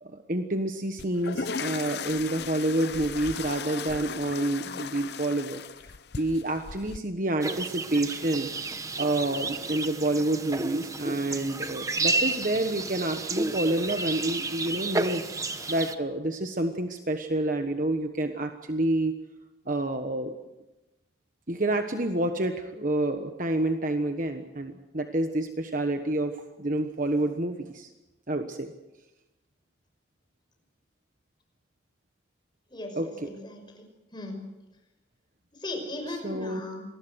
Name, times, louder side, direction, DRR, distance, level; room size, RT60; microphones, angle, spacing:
voice 1, 0.0-5.6 6.2-8.5 9.0-19.2 19.7-20.3 21.5-27.9 28.3-28.7 33.0-33.3 36.2-36.6, right 1 dB, 45° right, 6 dB, 1.3 m, -28 dB
sound 1, 1.0-7.0, left 5 dB, 55° left, 0.7 m, -36 dB
sound 2, 7.4-15.9, right 3 dB, 15° right, 1.0 m, -31 dB
voice 2, 32.7-33.9 34.1-34.4 35.5-36.9, left 2 dB, 25° left, 4 dB, 5.7 m, -38 dB
27.0 x 20.0 x 6.4 m, 1.0 s
head